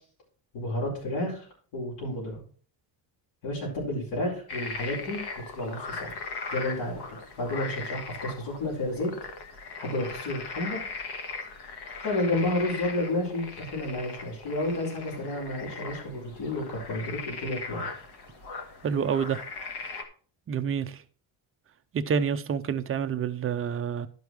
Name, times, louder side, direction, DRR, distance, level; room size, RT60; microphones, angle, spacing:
voice 1, 0.5-1.5 1.7-2.4 3.4-5.2 5.5-6.1 6.5-7.0 7.4-9.1 9.8-10.8 12.0-17.8, left 1 dB, 85° left, 4.7 m, -31 dB
sound 1, 4.5-20.0, left 4 dB, 50° left, 1.4 m, -39 dB
voice 2, 18.8-19.4 20.5-21.0 21.9-24.1, right 7 dB, 30° right, 0.4 m, -28 dB
11.5 x 5.3 x 4.6 m
cardioid pair, 180°, 49 cm